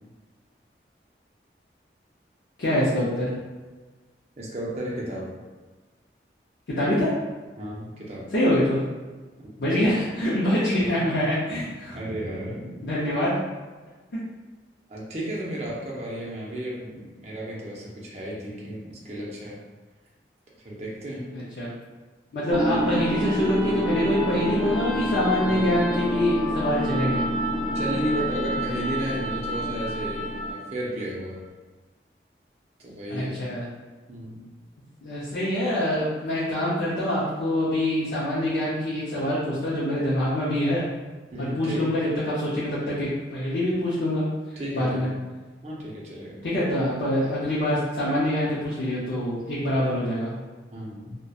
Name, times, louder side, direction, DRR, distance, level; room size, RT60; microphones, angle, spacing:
voice 1, 2.6-3.3 6.8-7.1 8.3-8.8 9.6-12.0 12.8-13.3 21.3-21.7 22.3-27.2 33.1-33.7 35.0-40.8 41.4-44.2 44.7-45.1 46.4-50.3, left 1 dB, 70° left, -9 dB, 0.5 m, -25 dB
voice 2, 4.4-5.3 7.6-8.3 9.4-9.7 11.9-12.8 14.9-19.6 20.6-21.3 27.7-31.4 32.8-33.4 34.1-34.4 41.3-41.9 44.6-45.1 45.6-46.4 50.7-51.2, right 1 dB, 35° right, -5 dB, 0.5 m, -33 dB
sound 1, 22.5-30.7, equal, 30° left, 0.7 m, -28 dB
2.7 x 2.1 x 2.3 m, 1.3 s
head